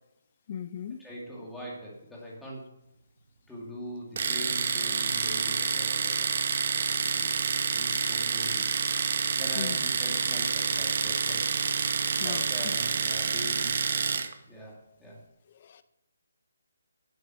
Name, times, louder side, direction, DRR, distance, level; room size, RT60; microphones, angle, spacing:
voice 1, 0.5-1.1 9.6-9.8 12.2-12.8 15.5-15.8, left 8 dB, 30° left, 13 dB, 0.6 m, -38 dB
voice 2, 1.0-2.6 3.5-6.3 6.9-7.4 7.7-8.7 9.4-13.8 14.5-15.2, equal, ahead, -6 dB, 2.5 m, -42 dB
Domestic sounds home sounds, 4.2-14.3, right 5 dB, 40° right, 1.0 m, -28 dB
11.0 x 7.7 x 6.3 m, 0.91 s
hypercardioid pair, 175°, 0 cm